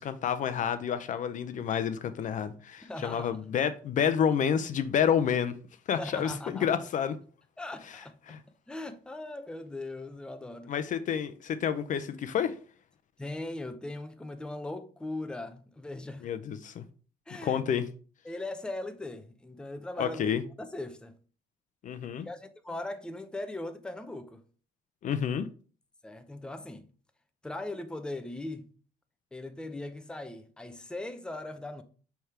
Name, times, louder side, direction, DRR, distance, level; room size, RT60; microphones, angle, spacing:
voice 1, 0.0-5.5 5.9-7.2 8.3-8.4 10.7-12.6 16.2-16.8 17.4-17.9 20.0-20.4 21.8-22.3 25.0-25.5, left 8 dB, 50° left, 0.5 m, -29 dB
voice 2, 2.8-3.3 6.0-6.7 7.6-8.4 8.7-10.7 13.2-16.3 17.3-17.6 18.2-21.1 22.2-24.4 26.0-26.9 27.4-28.7 29.3-31.8, left 2 dB, 5° left, 0.6 m, -39 dB
6.3 x 3.4 x 4.3 m
cardioid pair, 110°, 17 cm